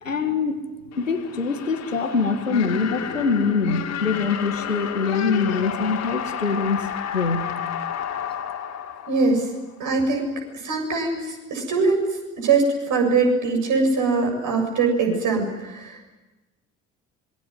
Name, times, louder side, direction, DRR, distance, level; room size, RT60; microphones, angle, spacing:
voice 1, 0.0-0.6 1.0-6.8 7.1-7.5, left 4 dB, 85° left, 7 dB, 1.8 m, -24 dB
sound 1, 0.9-9.8, left 9 dB, 45° left, 3.1 m, -31 dB
voice 2, 9.1-9.5 9.8-10.3 10.6-16.1, right 4 dB, 50° right, 3 dB, 7.2 m, -22 dB
26.0 x 21.5 x 9.4 m, 1.1 s
figure-of-eight pair, 55°, 38 cm